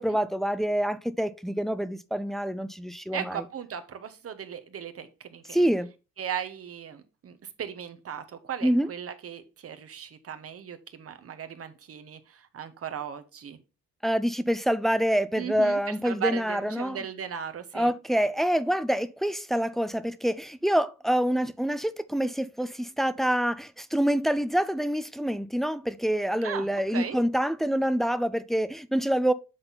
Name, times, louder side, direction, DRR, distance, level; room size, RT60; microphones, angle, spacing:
voice 1, 0.0-3.4 5.5-5.9 8.6-8.9 14.0-17.0 17.7-29.3, equal, ahead, 0.4 m, -26 dB
voice 2, 3.1-5.7 6.2-13.6 15.4-17.9 26.4-27.2, right 8 dB, 50° right, 1.1 m, -37 dB
8.0 x 3.9 x 3.9 m
cardioid pair, 90°, 30 cm